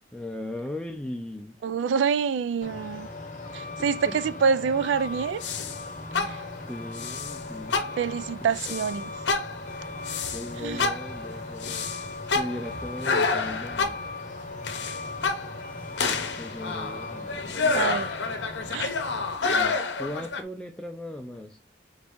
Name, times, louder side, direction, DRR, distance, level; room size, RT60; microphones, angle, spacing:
voice 1, 0.1-1.6 3.8-4.2 6.0-7.9 8.4-8.8 10.3-11.9 12.3-14.0 16.3-17.5 19.5-21.6, left 1 dB, 5° left, 0.4 m, -38 dB
voice 2, 1.6-3.1 3.5-5.4 8.0-9.1 10.6-10.9 17.7-18.1 18.7-18.9, right 6 dB, 90° right, 0.3 m, -26 dB
Truck, 2.6-19.4, left 2 dB, 40° left, 0.9 m, -38 dB
sound 1, 5.4-5.8 6.1-6.6 7.0-7.4 7.7-8.2 8.6-8.9 9.3-10.5 10.8-14.2 14.6-15.7 16.0-20.4, left 4 dB, 75° left, 0.7 m, -29 dB
4.0 x 2.6 x 3.5 m
head